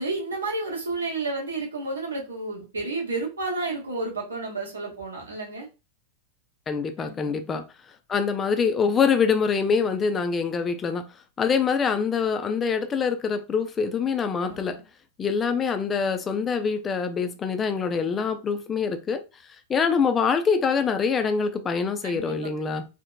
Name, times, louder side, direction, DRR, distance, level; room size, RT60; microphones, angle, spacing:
voice 1, 0.0-5.7 7.0-7.4 14.4-14.7 22.0-22.5, right 3 dB, 70° right, 0.8 m, -31 dB
voice 2, 6.7-7.6 8.1-11.0 11.4-14.8 15.2-19.2 19.7-22.9, left 5 dB, 20° left, 0.3 m, -24 dB
2.8 x 2.0 x 2.2 m
figure-of-eight pair, 90°, 0 cm